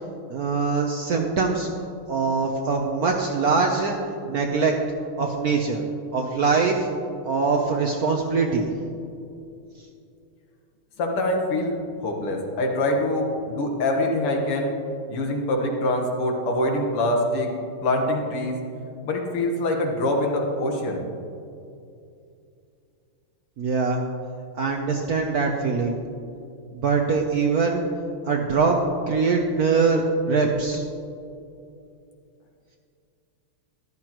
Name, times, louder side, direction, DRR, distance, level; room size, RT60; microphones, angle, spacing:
voice 1, 0.3-1.7 2.1-4.0 4.3-4.7 5.2-5.8 6.1-6.9 7.2-8.7 23.6-24.0 24.6-26.0 26.7-27.8 28.3-28.8 29.1-30.8, right 4 dB, 65° right, 1 dB, 0.9 m, -22 dB
voice 2, 11.0-14.7 15.1-17.5 17.8-18.6 19.1-21.0, left 1 dB, 90° left, 1 dB, 2.3 m, -24 dB
14.0 x 12.0 x 3.0 m, 2.5 s
omnidirectional pair, 2.4 m